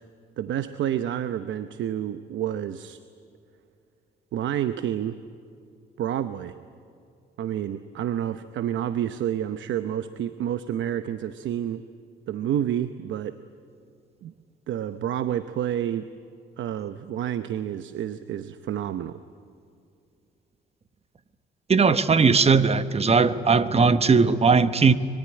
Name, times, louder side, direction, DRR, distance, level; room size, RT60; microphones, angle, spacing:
voice 1, 0.4-3.0 4.3-5.2 6.0-6.6 7.4-11.8 12.3-13.4 14.2-14.3 14.7-16.1 16.6-19.2, right 10 dB, 75° right, 11 dB, 0.9 m, -29 dB
voice 2, 21.7-24.9, right 5 dB, 30° right, 12 dB, 1.2 m, -19 dB
24.0 x 22.0 x 9.9 m, 2.4 s
cardioid pair, 90°, 20 cm